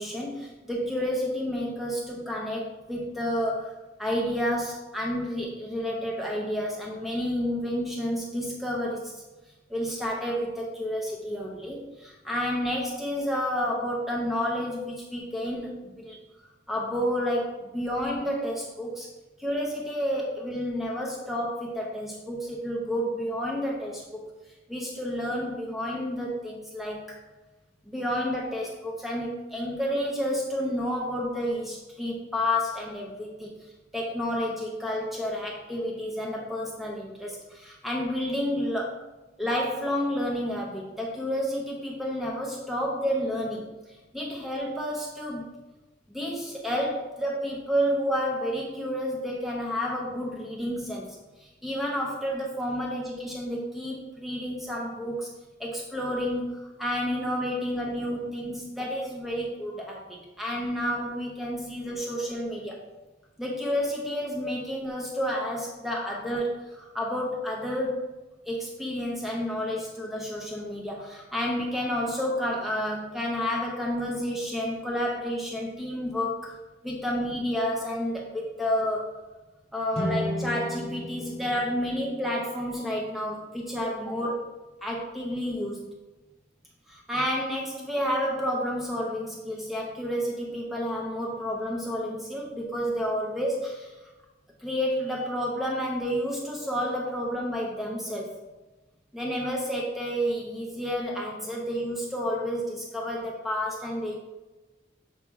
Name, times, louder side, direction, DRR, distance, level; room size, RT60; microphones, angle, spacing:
voice 1, 0.0-3.7 4.0-9.1 9.7-16.1 16.7-19.1 19.4-24.2 24.7-27.2 27.9-33.5 33.9-38.9 39.4-43.7 44.1-45.5 46.1-51.2 51.4-55.3 55.6-62.8 63.4-68.1 68.4-76.6 76.8-79.2 79.7-84.4 84.8-85.9 86.9-93.9 94.6-98.3 99.1-104.2, equal, ahead, -2 dB, 0.7 m, -30 dB
sound 1, 79.9-83.2, equal, 30° left, 0.8 m, -35 dB
7.0 x 2.8 x 4.6 m, 1.1 s
head